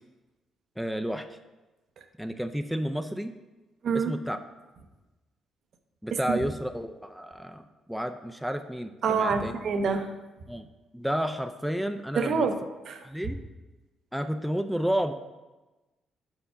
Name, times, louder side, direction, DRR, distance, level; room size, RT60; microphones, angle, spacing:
voice 1, 0.8-1.3 2.2-3.3 3.9-4.4 6.0-9.5 10.5-10.7 10.9-12.5 13.0-13.4 14.1-15.1, equal, ahead, 7 dB, 0.3 m, -31 dB
voice 2, 9.0-10.1 12.2-12.6 12.9-13.0, right 5 dB, 65° right, 7 dB, 0.6 m, -26 dB
4.7 x 4.5 x 5.6 m, 1.1 s
cardioid pair, 90°, 0 cm